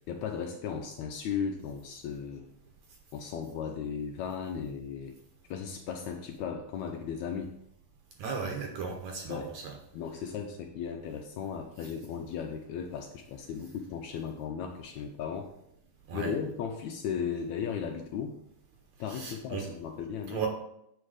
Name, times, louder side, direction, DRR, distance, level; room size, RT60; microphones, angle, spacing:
voice 1, 0.1-2.4 3.1-5.1 5.5-7.5 9.3-9.5 9.9-15.5 16.1-18.4 19.0-20.4, left 7 dB, 80° left, 4 dB, 1.7 m, -36 dB
voice 2, 8.2-9.7 16.1-16.3 19.1-19.7 20.3-20.5, right 5 dB, 70° right, 2 dB, 2.0 m, -35 dB
7.6 x 4.6 x 4.8 m, 0.78 s
omnidirectional pair, 3.8 m